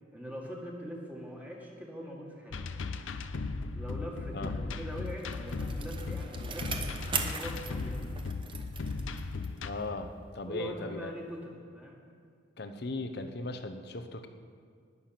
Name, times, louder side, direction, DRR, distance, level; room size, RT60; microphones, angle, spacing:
voice 1, 0.1-2.6 3.7-6.9 7.2-8.0 10.4-12.0, equal, 10° right, -2 dB, 1.8 m, -42 dB
sound 1, 2.5-9.7, left 3 dB, 90° left, 0.6 m, -37 dB
Bicycle, 4.8-9.7 10.1-10.2, right 5 dB, 25° right, 0.9 m, -40 dB
voice 2, 9.6-11.1 12.6-14.3, left 2 dB, 55° left, 8 dB, 0.9 m, -38 dB
19.0 x 7.0 x 5.9 m, 2.2 s
head